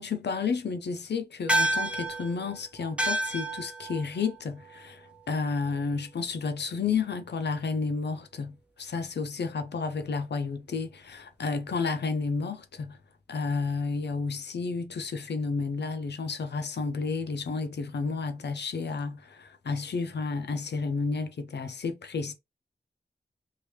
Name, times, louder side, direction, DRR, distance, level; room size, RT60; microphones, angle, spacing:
voice 1, 0.0-13.0 13.3-22.3, left 4 dB, 90° left, 0.6 m, -31 dB
sound 1, 1.5-6.2, right 1 dB, 5° right, 0.7 m, -31 dB
3.1 x 2.6 x 3.1 m
wide cardioid pair, 90°, 17 cm